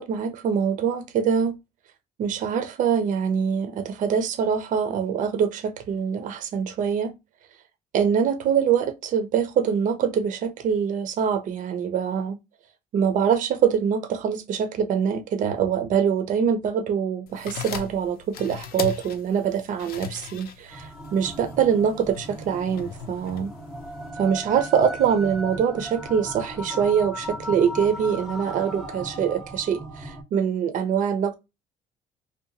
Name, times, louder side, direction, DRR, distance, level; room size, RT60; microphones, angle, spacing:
voice 1, 0.0-1.6 2.2-7.1 7.9-12.4 12.9-23.5 24.2-31.4, right 7 dB, 50° right, 0.4 m, -24 dB
sound 1, 17.3-24.1, left 7 dB, 65° left, 0.5 m, -38 dB
sound 2, 20.7-30.2, equal, ahead, 0.6 m, -37 dB
2.7 x 2.2 x 2.6 m
cardioid pair, 110°, 17 cm